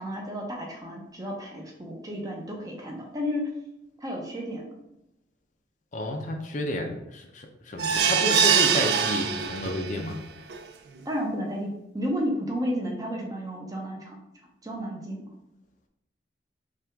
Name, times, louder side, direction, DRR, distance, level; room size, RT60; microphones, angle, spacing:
voice 1, 0.0-3.5 4.0-4.7 11.0-14.2 14.6-15.2, equal, 20° right, 0 dB, 0.7 m, -32 dB
voice 2, 5.9-10.2, left 1 dB, 45° left, 3 dB, 0.5 m, -31 dB
sound 1, 7.8-10.0 10.5-10.6 11.0-11.1, right 7 dB, 60° right, 0.4 m, -23 dB
5.8 x 2.4 x 3.5 m, 0.86 s
head